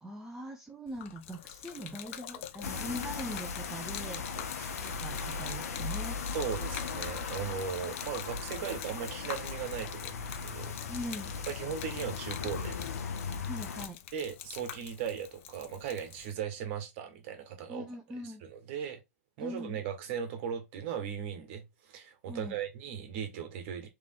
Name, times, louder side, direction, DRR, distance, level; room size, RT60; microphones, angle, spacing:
voice 1, 0.0-4.3 4.8-6.3 10.9-11.3 13.5-14.0 17.7-18.4 19.4-19.7 22.3-22.6, equal, 5° right, 0.6 m, -41 dB
Gurgling / Liquid, 0.9-16.3, left 11 dB, 50° left, 0.6 m, -46 dB
sound 1, 2.6-13.9, left 5 dB, 70° left, 0.9 m, -38 dB
voice 2, 4.4-5.0 6.3-10.7 11.5-12.9 13.1-13.2 14.1-17.9 18.4-19.0 19.4-23.9, right 8 dB, 50° right, 1.4 m, -38 dB
3.6 x 3.3 x 3.6 m
hypercardioid pair, 125°, 9 cm